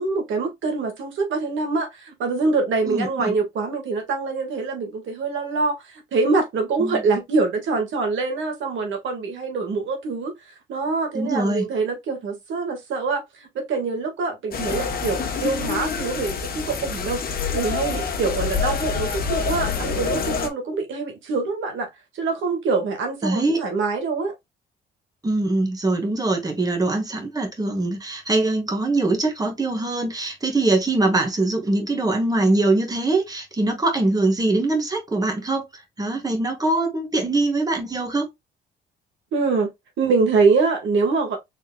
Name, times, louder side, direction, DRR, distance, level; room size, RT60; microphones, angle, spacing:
voice 1, 0.0-17.2 17.5-21.9 22.1-24.3 39.3-39.7 40.0-41.4, right 4 dB, 75° right, 1.9 m, -24 dB
voice 2, 2.8-3.3 6.8-7.0 11.1-11.7 23.2-23.6 25.2-38.3, right 2 dB, 20° right, 1.7 m, -23 dB
sound 1, 14.5-20.5, left 5 dB, 50° left, 1.0 m, -26 dB
4.4 x 3.6 x 2.3 m
cardioid pair, 90°, 20 cm